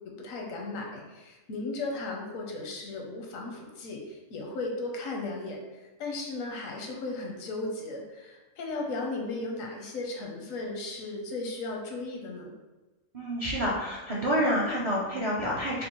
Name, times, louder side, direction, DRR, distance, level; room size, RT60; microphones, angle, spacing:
voice 1, 0.0-12.5, left 2 dB, 85° left, 0 dB, 1.1 m, -36 dB
voice 2, 13.1-15.9, equal, 45° right, -6 dB, 0.4 m, -28 dB
5.1 x 2.1 x 3.0 m, 1.2 s
omnidirectional pair, 1.3 m